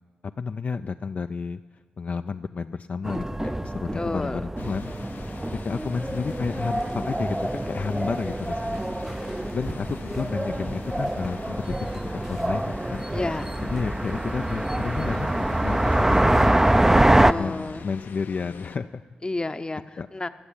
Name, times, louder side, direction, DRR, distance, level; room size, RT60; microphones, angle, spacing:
voice 1, 0.4-1.6 2.0-4.9 5.6-13.0 13.6-15.3 15.6-17.1 17.4-19.0 20.0-20.1, left 5 dB, 50° left, 8 dB, 0.3 m, -31 dB
sound 1, 3.0-17.3, right 1 dB, 15° right, 0.5 m, -25 dB
voice 2, 3.9-4.5 13.1-13.6 17.2-17.9 19.2-20.3, left 2 dB, 25° left, 11 dB, 0.7 m, -31 dB
sound 2, 4.6-18.8, left 6 dB, 75° left, 0.7 m, -44 dB
14.0 x 6.9 x 10.0 m, 1.5 s
supercardioid pair, 50°, 3 cm